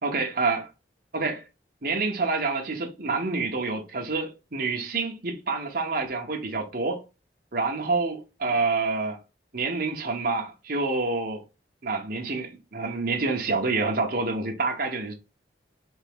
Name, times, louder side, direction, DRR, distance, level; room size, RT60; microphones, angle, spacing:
voice 1, 0.0-0.7 1.1-1.4 1.8-7.0 7.5-9.2 9.5-11.4 11.8-15.1, right 3 dB, 55° right, 1.0 m, -27 dB
3.7 x 3.6 x 3.5 m
head